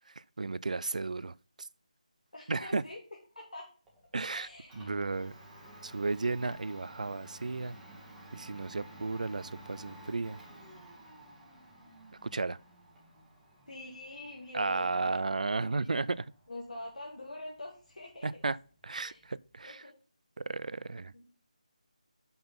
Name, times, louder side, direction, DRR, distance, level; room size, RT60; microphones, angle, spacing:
voice 1, 0.4-1.7 2.5-2.8 4.1-4.5 4.7-5.3 5.8-7.7 8.3-10.4 12.3-12.6 14.5-16.3 18.2-18.6 18.8-19.8 20.4-21.1, right 3 dB, 70° right, 0.3 m, -33 dB
voice 2, 2.3-3.0 3.3-3.7 4.3-4.9 5.2-5.3 13.7-15.9 16.5-18.4 19.0-19.2 19.7-19.9 21.1-21.3, left 1 dB, 75° left, 1.8 m, -45 dB
Domestic sounds home sounds, 3.9-19.7, right 1 dB, 5° right, 1.2 m, -53 dB
5.8 x 5.5 x 5.5 m
figure-of-eight pair, 160°, 4 cm